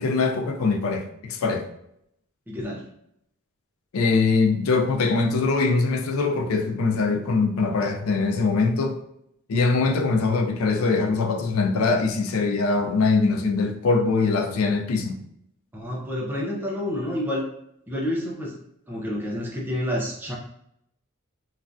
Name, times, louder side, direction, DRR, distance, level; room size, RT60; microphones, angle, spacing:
voice 1, 0.0-1.7 3.9-9.0 9.5-15.2, left 4 dB, 70° left, 4 dB, 0.4 m, -22 dB
voice 2, 2.5-2.8 15.7-17.5 17.9-18.6 18.9-20.4, left 1 dB, 10° right, -2 dB, 0.4 m, -29 dB
3.1 x 2.3 x 2.5 m, 0.75 s
head